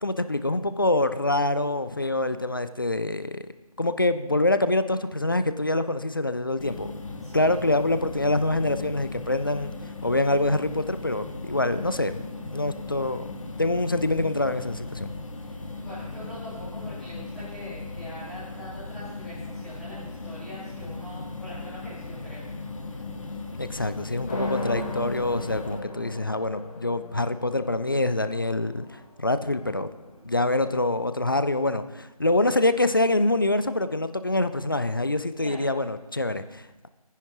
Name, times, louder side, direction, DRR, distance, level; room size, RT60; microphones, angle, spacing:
voice 1, 0.0-3.5 3.8-6.9 7.3-9.7 10.0-12.2 12.5-13.3 13.6-15.1 23.6-29.9 30.2-36.9, left 2 dB, 35° left, 11 dB, 0.4 m, -25 dB
sound 1, 6.6-25.8, left 3 dB, 55° left, 1.3 m, -38 dB
voice 2, 7.2-7.5 15.7-22.5 35.4-35.7, left 1 dB, ahead, -18 dB, 2.5 m, -43 dB
sound 2, 24.3-30.3, left 2 dB, 15° left, 1.7 m, -37 dB
19.5 x 10.0 x 3.1 m, 1.1 s
figure-of-eight pair, 170°, 19 cm